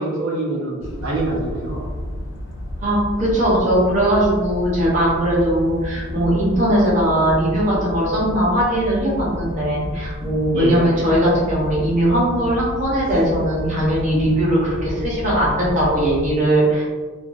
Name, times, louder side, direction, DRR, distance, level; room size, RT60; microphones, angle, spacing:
voice 1, 0.0-1.9 10.5-10.8, right 2 dB, 80° right, -5 dB, 0.7 m, -25 dB
sound 1, 0.8-16.3, equal, 65° left, 0.4 m, -31 dB
voice 2, 2.8-16.8, right 1 dB, 35° right, -8 dB, 0.7 m, -19 dB
2.4 x 2.3 x 2.5 m, 1.4 s
head